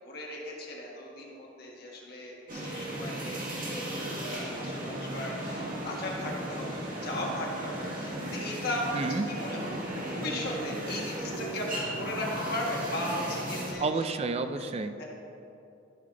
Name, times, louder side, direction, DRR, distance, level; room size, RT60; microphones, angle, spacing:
voice 1, 0.0-14.1 14.5-14.7 15.0-15.1, left 1 dB, 55° left, -3 dB, 1.5 m, -37 dB
sound 1, 2.5-13.7, right 1 dB, 45° right, 1.8 m, -36 dB
voice 2, 8.9-9.3 13.8-15.0, right 3 dB, 30° right, 10 dB, 0.4 m, -30 dB
13.0 x 5.7 x 3.8 m, 2.8 s
head